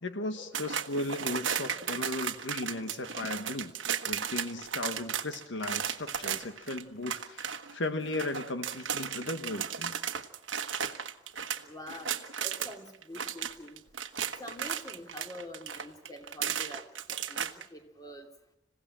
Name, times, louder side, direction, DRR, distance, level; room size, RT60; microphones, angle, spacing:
voice 1, 0.0-3.7 4.0-10.0, left 2 dB, 80° left, 8 dB, 1.3 m, -36 dB
sound 1, 0.5-12.7 13.0-17.6, right 8 dB, 90° right, 1.2 m, -35 dB
voice 2, 11.7-12.1 12.4-13.8 14.4-18.3, left 1 dB, 20° left, 4 dB, 2.6 m, -46 dB
27.0 x 16.5 x 7.5 m, 0.81 s
head